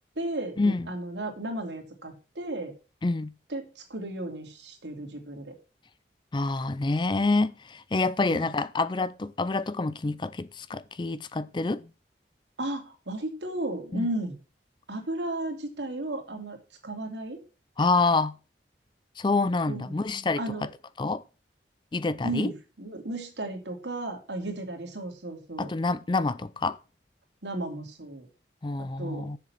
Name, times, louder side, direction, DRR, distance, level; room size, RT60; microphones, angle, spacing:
voice 1, 0.2-2.7 3.5-5.6 8.2-8.5 12.6-14.4 14.9-16.6 16.8-17.4 19.7-19.9 20.4-20.7 22.2-25.7 27.4-28.3 28.8-29.3, right 1 dB, 85° right, 2.8 m, -34 dB
voice 2, 3.0-3.3 6.3-11.9 13.9-14.1 17.8-18.3 19.2-20.7 21.0-21.2 21.9-22.5 25.6-26.8 28.6-29.4, left 3 dB, 25° left, 0.4 m, -27 dB
7.6 x 6.9 x 6.0 m
head